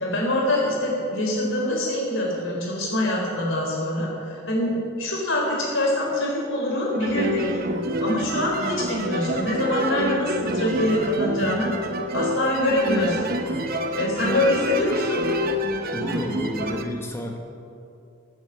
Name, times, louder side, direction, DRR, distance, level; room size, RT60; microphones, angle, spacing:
voice 1, 0.0-7.4 8.0-11.7 12.1-13.6 14.0-15.2, left 1 dB, 60° left, -2 dB, 4.2 m, -24 dB
sound 1, 6.9-16.8, equal, 40° right, 0.9 m, -27 dB
voice 2, 15.9-17.4, equal, 10° left, 2 dB, 1.3 m, -30 dB
15.5 x 8.8 x 7.6 m, 2.5 s
head